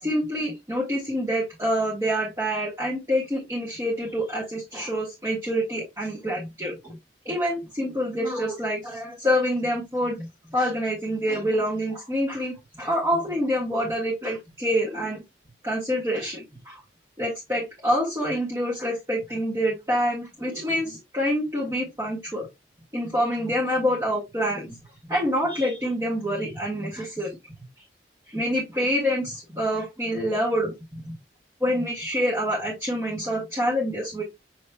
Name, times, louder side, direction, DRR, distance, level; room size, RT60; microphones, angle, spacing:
voice 1, 0.0-7.0 7.2-15.2 15.6-16.8 17.2-22.5 22.9-24.8 25.1-27.3 28.3-30.7 31.1-31.2 31.6-34.2, equal, 15° right, -5 dB, 1.3 m, -26 dB
6.6 x 2.9 x 2.2 m, 0.21 s
head